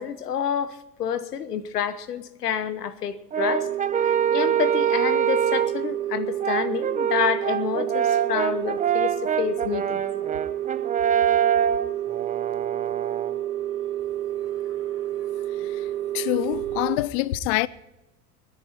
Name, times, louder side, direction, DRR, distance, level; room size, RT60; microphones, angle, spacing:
voice 1, 0.0-3.7 4.3-10.0, left 8 dB, 80° left, 1.1 m, -28 dB
Brass instrument, 3.3-5.8 6.4-13.4, right 9 dB, 15° right, 0.7 m, -25 dB
sound 1, 3.4-17.0, right 12 dB, 60° right, 0.6 m, -29 dB
voice 2, 16.1-17.7, left 20 dB, 45° left, 0.4 m, -26 dB
21.5 x 9.9 x 4.4 m
figure-of-eight pair, 75°, 46 cm